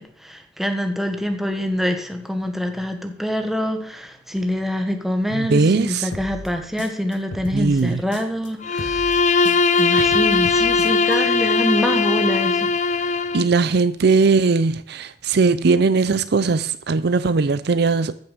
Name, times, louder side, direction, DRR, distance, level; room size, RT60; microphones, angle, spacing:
voice 1, 0.0-13.3, equal, ahead, 1.4 m, -26 dB
voice 2, 5.3-6.1 7.5-8.0 9.9-10.1 13.3-18.1, right 4 dB, 60° right, 0.5 m, -19 dB
sound 1, 6.1-8.5 8.8-11.1, left 1 dB, 80° left, 1.9 m, -35 dB
Bowed string instrument, 8.6-13.5, left 4 dB, 40° left, 0.7 m, -19 dB
14.0 x 6.7 x 6.7 m
head